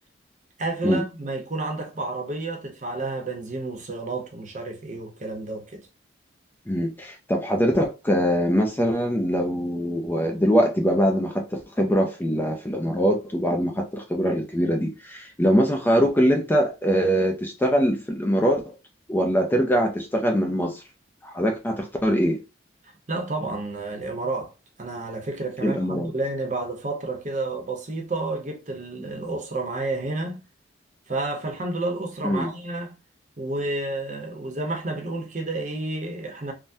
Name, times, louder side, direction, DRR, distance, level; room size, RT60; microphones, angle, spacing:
voice 1, 0.6-5.8 23.1-24.5 24.8-30.4 31.1-32.9 33.4-36.5, right 2 dB, 40° right, 0.7 m, -30 dB
voice 2, 6.7-18.8 19.1-20.8 21.2-22.4 25.6-26.1 32.2-32.5, equal, 10° left, 0.4 m, -23 dB
3.4 x 2.1 x 2.6 m
head